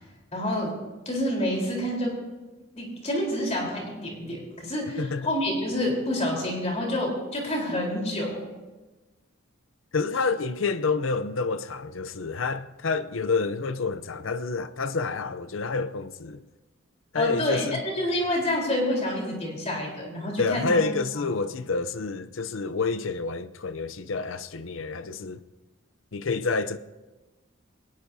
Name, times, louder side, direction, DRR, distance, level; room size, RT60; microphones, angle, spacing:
voice 1, 0.3-0.7 1.1-2.1 2.7-8.4 17.1-20.8 21.2-21.3, left 1 dB, 35° left, 4.0 m, -28 dB
voice 2, 5.0-5.3 9.9-16.4 17.1-17.8 20.4-25.4 26.1-26.8, left 4 dB, 80° left, 0.6 m, -28 dB
22.0 x 19.0 x 2.7 m
head